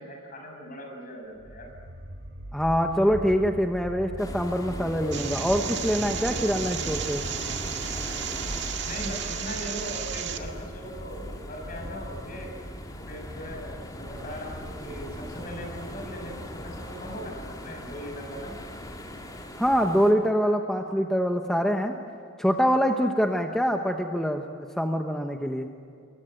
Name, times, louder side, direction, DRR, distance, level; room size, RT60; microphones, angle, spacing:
voice 1, 0.0-1.7 8.8-12.5 12.9-18.5, equal, 45° left, 2 dB, 7.3 m, -39 dB
sound 1, 1.4-18.4, equal, 90° right, 2.6 m, -42 dB
voice 2, 2.5-7.2 19.6-21.9 22.4-24.4 24.8-25.7, equal, ahead, 3 dB, 1.1 m, -24 dB
sound 2, 4.2-20.1, left 1 dB, 20° left, 2.8 m, -39 dB
sound 3, 5.1-10.4, right 9 dB, 60° right, 2.0 m, -34 dB
28.0 x 22.5 x 9.3 m, 2.4 s
head